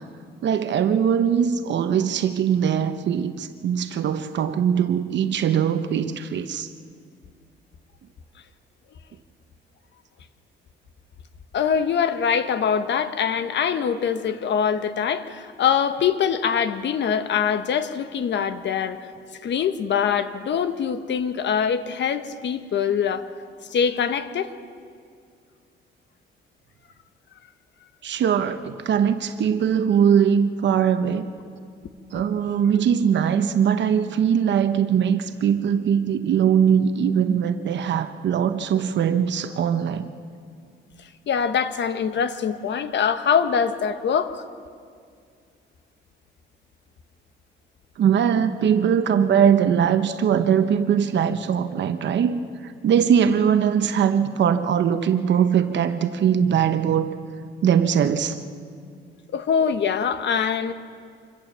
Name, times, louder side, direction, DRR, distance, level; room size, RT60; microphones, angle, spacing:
voice 1, 0.4-6.7 28.0-31.3 32.1-40.1 48.0-52.4 52.8-57.2 57.6-58.4, right 8 dB, 65° right, 9 dB, 1.0 m, -21 dB
voice 2, 11.5-19.0 19.4-23.3 23.7-24.5 32.7-32.8 41.3-44.4 59.3-60.7, left 7 dB, 65° left, 11 dB, 1.2 m, -23 dB
25.5 x 16.0 x 7.5 m, 2.2 s
cardioid pair, 90°, 20 cm